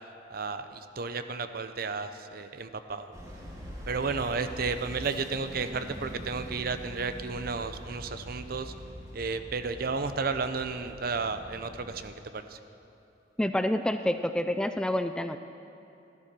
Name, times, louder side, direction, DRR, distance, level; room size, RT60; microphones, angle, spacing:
voice 1, 0.3-3.1 3.9-8.7 9.1-12.6, right 4 dB, 55° right, 10 dB, 0.6 m, -33 dB
sound 1, 3.1-12.0, equal, 20° right, 2.1 m, -44 dB
voice 2, 13.4-15.4, left 1 dB, 5° left, 9 dB, 0.3 m, -28 dB
14.5 x 12.0 x 6.1 m, 2.8 s
head